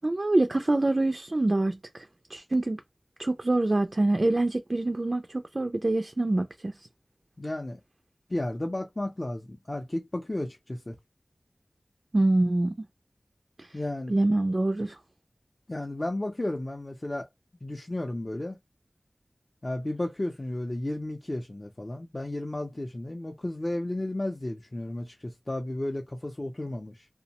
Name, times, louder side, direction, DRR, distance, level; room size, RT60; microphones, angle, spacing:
voice 1, 0.0-2.8 3.2-6.7 12.1-12.7 13.6-13.7 14.1-15.0, right 2 dB, 45° right, 0.3 m, -25 dB
voice 2, 7.4-7.8 8.3-11.0 13.7-14.1 15.7-17.3 17.6-18.6 19.6-27.1, left 1 dB, 35° left, 0.5 m, -33 dB
2.6 x 2.0 x 2.8 m
wide cardioid pair, 60°, 0 cm